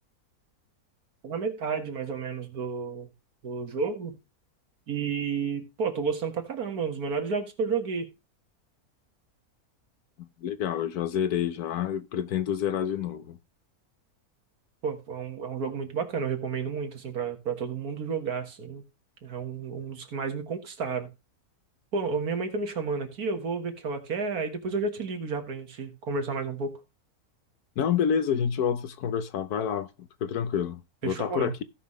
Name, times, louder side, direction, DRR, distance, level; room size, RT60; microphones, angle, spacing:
voice 1, 1.2-3.1 3.4-4.2 4.9-8.1 14.8-18.8 19.2-21.1 21.9-26.8 31.0-31.5, right 5 dB, 80° right, 2.1 m, -31 dB
voice 2, 10.2-13.4 27.8-31.6, left 8 dB, 85° left, 1.3 m, -28 dB
16.0 x 5.6 x 3.2 m
omnidirectional pair, 1.6 m